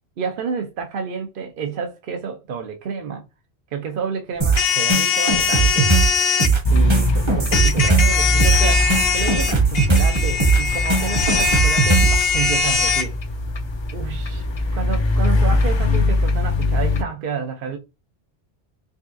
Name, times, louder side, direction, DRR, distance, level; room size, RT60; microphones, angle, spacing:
voice 1, 0.2-3.3 3.7-5.9 6.7-13.1 13.9-14.5 14.7-17.8, right 6 dB, 60° right, 0.7 m, -29 dB
sound 1, 4.4-12.2, right 4 dB, 30° right, 0.8 m, -19 dB
sound 2, 4.6-6.5 7.5-13.0, left 5 dB, 70° left, 0.8 m, -21 dB
sound 3, 6.6-17.0, left 1 dB, 50° left, 0.3 m, -22 dB
5.2 x 2.3 x 2.5 m
omnidirectional pair, 1.1 m